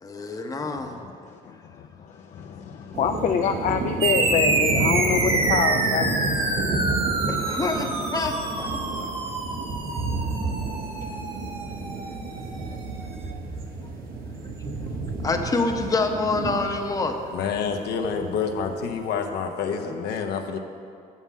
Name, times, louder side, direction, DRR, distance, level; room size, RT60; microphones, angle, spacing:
voice 1, 0.0-1.0 7.3-9.1 15.2-17.2, left 3 dB, 20° left, 4 dB, 0.8 m, -27 dB
voice 2, 0.9-6.3, left 7 dB, 45° left, 5 dB, 0.4 m, -27 dB
sound 1, 2.9-19.0, right 3 dB, 65° right, 1.1 m, -31 dB
sound 2, 4.0-12.9, right 3 dB, 35° right, 1.3 m, -27 dB
voice 3, 17.3-20.6, left 6 dB, 75° left, 5 dB, 0.8 m, -28 dB
7.1 x 5.6 x 7.3 m, 2.3 s
cardioid pair, 110°, 17 cm